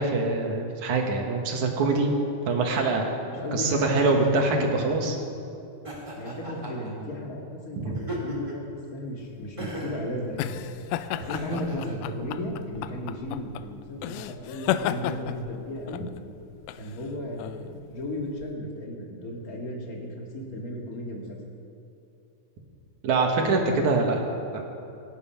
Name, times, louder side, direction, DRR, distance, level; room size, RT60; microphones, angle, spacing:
voice 1, 0.0-2.2 2.5-3.1 3.5-5.2 7.8-8.0 23.0-24.6, right 3 dB, 55° right, 2 dB, 2.6 m, -24 dB
voice 2, 3.3-5.0 6.2-8.6 8.9-10.6 11.1-16.1 16.8-21.4, left 1 dB, 35° left, -1 dB, 1.5 m, -35 dB
Laughter, 5.8-6.9 7.9-8.7 9.6-10.1 11.2-12.0, right 1 dB, 10° right, 1.6 m, -36 dB
sound 1, 9.3-18.5, left 12 dB, 80° left, 2.3 m, -34 dB
25.5 x 9.5 x 5.8 m, 2.7 s
omnidirectional pair, 4.6 m